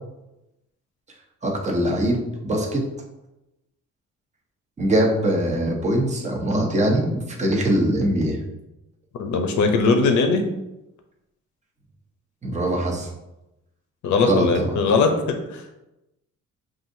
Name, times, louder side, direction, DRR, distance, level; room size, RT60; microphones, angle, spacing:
voice 1, 1.4-2.8 4.8-8.4 12.4-13.1 14.2-14.7, right 1 dB, 25° right, 0 dB, 0.9 m, -22 dB
voice 2, 9.2-10.4 14.0-15.7, left 4 dB, 70° left, 5 dB, 0.8 m, -20 dB
5.7 x 2.6 x 2.7 m, 0.94 s
cardioid pair, 90°, 30 cm